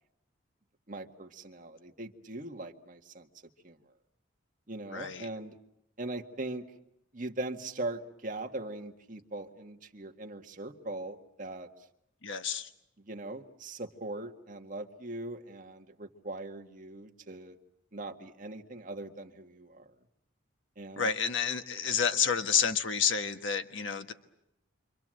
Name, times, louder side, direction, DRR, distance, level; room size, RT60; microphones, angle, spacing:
voice 1, 0.9-3.3 3.6-3.8 4.7-5.6 6.0-6.7 7.1-11.7 13.0-17.6 17.9-19.9 20.8-21.1, right 2 dB, 40° right, 4 dB, 1.9 m, -40 dB
voice 2, 4.9-5.3 12.2-12.7 21.0-24.1, left 7 dB, 70° left, 8 dB, 1.4 m, -29 dB
29.0 x 25.5 x 7.8 m, 0.82 s
head